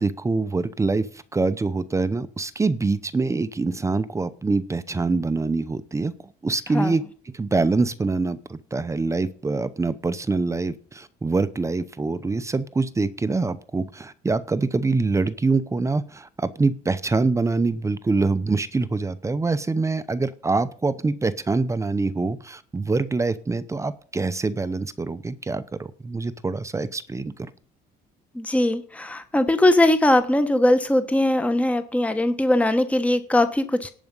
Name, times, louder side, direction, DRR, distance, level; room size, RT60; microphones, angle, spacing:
voice 1, 0.0-6.1 6.4-27.5, right 3 dB, 15° right, 13 dB, 0.8 m, -25 dB
voice 2, 28.3-33.9, left 1 dB, 10° left, 9 dB, 1.1 m, -20 dB
11.0 x 5.1 x 8.1 m, 0.43 s
cardioid pair, 110°, 17 cm